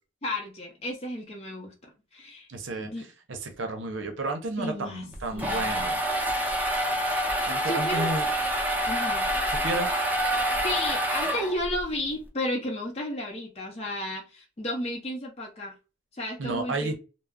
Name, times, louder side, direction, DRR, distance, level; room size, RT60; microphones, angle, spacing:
voice 1, 0.2-2.5 2.8-3.0 4.6-5.0 5.3-5.7 7.6-8.1 8.8-9.3 10.6-15.7 16.1-16.9, left 1 dB, 30° left, 0.6 m, -33 dB
voice 2, 2.5-2.9 3.3-6.0 7.5-8.3 9.5-9.9 16.4-16.9, right 2 dB, 65° right, 0.6 m, -32 dB
sound 1, 5.1-11.8, right 1 dB, 10° right, 0.5 m, -27 dB
2.3 x 2.0 x 3.4 m
head